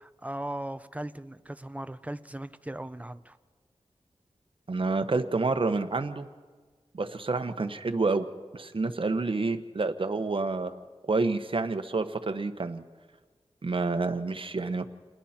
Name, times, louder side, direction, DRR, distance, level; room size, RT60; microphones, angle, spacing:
voice 1, 0.0-3.4, right 1 dB, 15° right, 12 dB, 0.8 m, -38 dB
voice 2, 4.7-6.3 6.9-8.3 8.5-12.8 13.6-14.9, right 3 dB, 55° right, 8 dB, 1.2 m, -29 dB
29.0 x 20.5 x 4.4 m, 1.5 s
wide cardioid pair, 60°, 11 cm